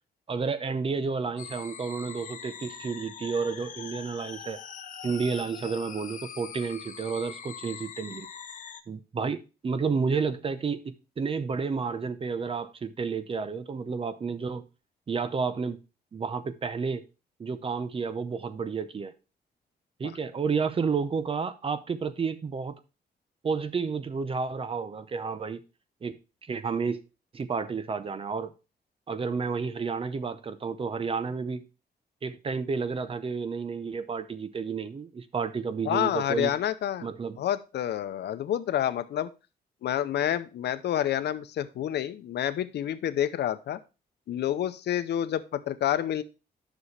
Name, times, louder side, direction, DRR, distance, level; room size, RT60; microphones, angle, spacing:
voice 1, 0.3-4.6 5.0-8.3 8.9-14.6 15.1-15.8 16.1-17.0 17.4-19.1 20.0-22.7 23.4-25.6 26.0-26.2 26.5-27.0 27.3-28.5 29.1-31.6 32.2-36.5 37.0-37.4, right 5 dB, 35° right, 0.7 m, -31 dB
sound 1, 1.4-8.8, left 7 dB, 50° left, 0.8 m, -43 dB
voice 2, 35.8-37.1 37.4-39.3 39.8-43.8 44.3-46.2, left 11 dB, 85° left, 0.7 m, -28 dB
9.7 x 6.2 x 3.2 m
wide cardioid pair, 140°, 17 cm